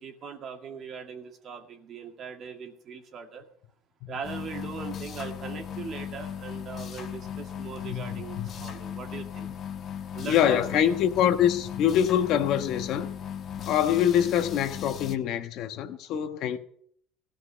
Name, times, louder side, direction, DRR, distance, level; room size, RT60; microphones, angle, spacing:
voice 1, 0.0-3.5 4.1-9.5 10.1-11.0, right 6 dB, 45° right, 2.2 m, -40 dB
sound 1, 4.2-15.2, left 8 dB, 40° left, 1.2 m, -37 dB
voice 2, 7.8-8.5 10.2-13.1 13.6-16.6, left 10 dB, 60° left, 1.2 m, -25 dB
15.5 x 5.3 x 9.8 m
supercardioid pair, 105°, 0 cm